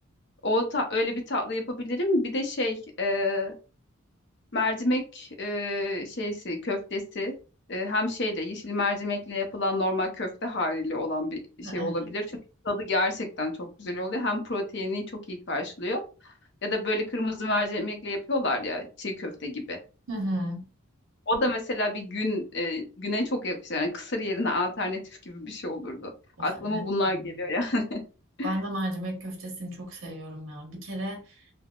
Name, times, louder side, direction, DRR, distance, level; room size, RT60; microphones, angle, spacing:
voice 1, 0.4-3.5 4.5-7.3 7.7-12.2 12.6-16.3 16.6-19.8 21.3-25.0 25.3-26.1 26.4-28.0 28.4-28.5, left 2 dB, 55° left, 0.7 m, -29 dB
voice 2, 11.6-12.1 20.1-20.6 26.4-26.8 27.1-27.3 28.4-31.4, right 1 dB, 75° right, 1.1 m, -34 dB
3.4 x 2.1 x 2.4 m
head